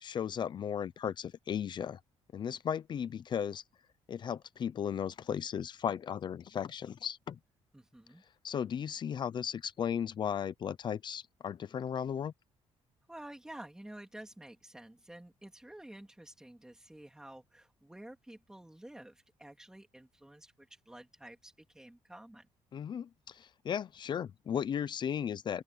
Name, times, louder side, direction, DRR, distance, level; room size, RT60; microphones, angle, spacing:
voice 1, 0.0-2.0 2.3-3.6 4.1-7.4 8.4-12.3 22.7-25.6, left 8 dB, 40° left, 0.7 m, -36 dB
voice 2, 7.7-8.2 13.1-22.5, right 1 dB, 5° right, 3.3 m, -51 dB
open air
cardioid pair, 155°, 12 cm